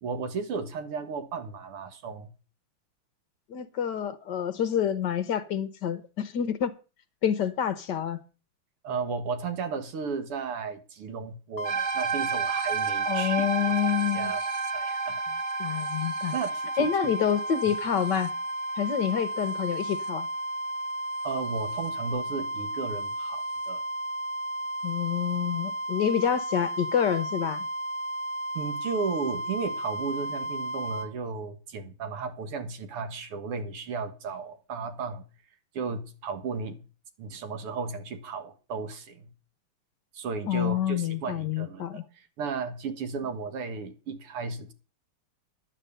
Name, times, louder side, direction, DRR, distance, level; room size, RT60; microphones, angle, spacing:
voice 1, 0.0-2.3 8.8-13.5 14.1-14.4 14.7-15.2 16.3-16.9 21.2-23.8 28.5-35.2 35.7-36.8 37.2-39.3 40.1-41.9 42.1-44.7, right 5 dB, 90° right, 2.5 m, -34 dB
voice 2, 3.5-6.7 7.2-8.2 13.0-14.3 15.6-16.3 16.8-18.3 18.8-20.3 24.8-27.7 40.5-42.0, left 9 dB, 60° left, 1.3 m, -27 dB
sound 1, 11.6-31.1, right 1 dB, 45° left, 1.6 m, -33 dB
sound 2, 11.6-20.1, right 9 dB, 45° right, 1.1 m, -33 dB
11.0 x 9.0 x 6.7 m
omnidirectional pair, 2.4 m